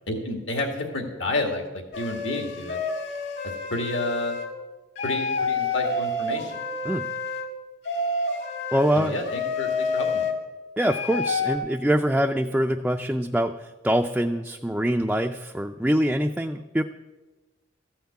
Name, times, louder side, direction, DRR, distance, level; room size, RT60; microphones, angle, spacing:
voice 1, 0.1-2.8 3.7-4.4 5.0-6.6 9.0-10.3, left 2 dB, 80° left, 3 dB, 2.1 m, -30 dB
sound 1, 1.9-4.5 5.0-7.5 7.8-10.3 10.8-11.6, left 3 dB, 60° left, 1.8 m, -29 dB
voice 2, 8.7-9.1 10.8-16.8, equal, 5° right, 3 dB, 0.3 m, -24 dB
14.0 x 5.8 x 8.5 m, 1.2 s
head